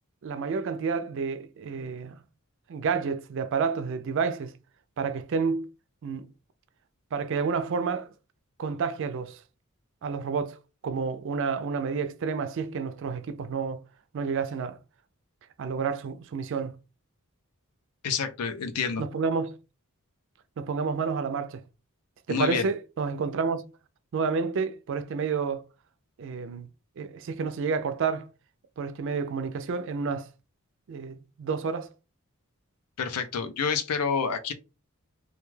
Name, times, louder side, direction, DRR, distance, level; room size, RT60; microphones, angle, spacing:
voice 1, 0.2-2.2 2.7-4.5 5.0-5.7 6.0-6.3 7.1-8.1 8.6-9.4 10.0-10.6 10.8-13.8 14.1-14.8 15.6-16.7 19.0-19.6 20.6-21.6 22.3-23.6 24.1-25.6 26.2-26.7 27.0-28.3 28.8-30.3 30.9-31.9, right 5 dB, 55° right, 0.3 m, -29 dB
voice 2, 18.0-19.0 22.3-22.7 33.0-34.5, left 6 dB, 90° left, 0.5 m, -28 dB
2.3 x 2.2 x 3.1 m
head